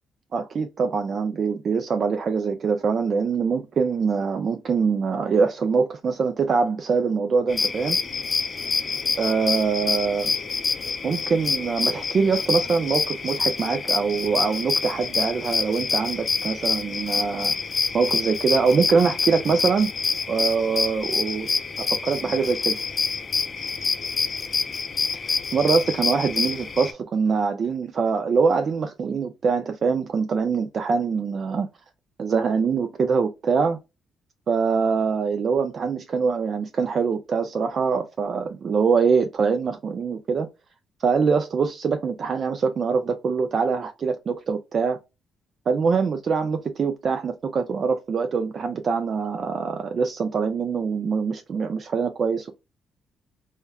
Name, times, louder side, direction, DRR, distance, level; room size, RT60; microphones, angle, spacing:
voice 1, 0.3-8.0 9.2-10.3 11.0-17.5 17.9-19.9 20.3-21.5 21.8-22.9 25.1-31.7 32.2-33.8 34.5-40.5 41.0-45.0 45.7-52.5, right 5 dB, 50° right, 0.3 m, -24 dB
sound 1, 7.5-26.9, left 5 dB, 40° left, 0.4 m, -27 dB
3.3 x 2.2 x 2.2 m
cardioid pair, 90°, 0 cm